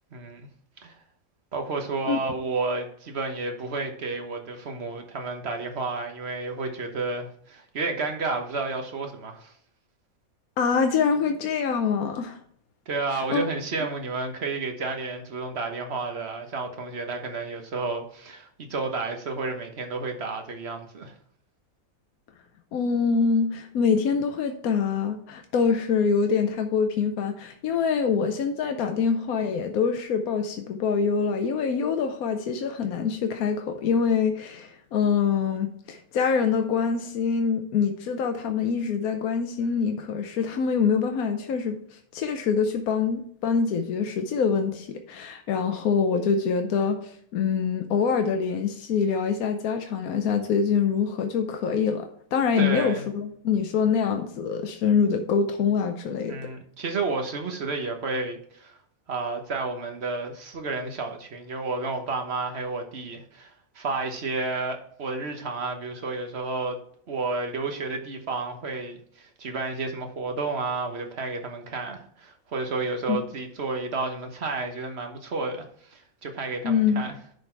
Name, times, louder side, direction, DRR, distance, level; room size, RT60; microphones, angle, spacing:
voice 1, 0.1-0.5 0.8-0.9 1.5-9.5 12.9-21.1 52.6-53.1 56.3-58.8 59.1-66.8 67.1-77.1, right 3 dB, 50° right, 4 dB, 1.4 m, -31 dB
voice 2, 10.6-12.4 13.1-13.4 22.7-56.4 73.1-73.2 76.6-77.0, left 6 dB, 85° left, 5 dB, 1.2 m, -25 dB
10.5 x 4.0 x 4.5 m, 0.63 s
omnidirectional pair, 1.5 m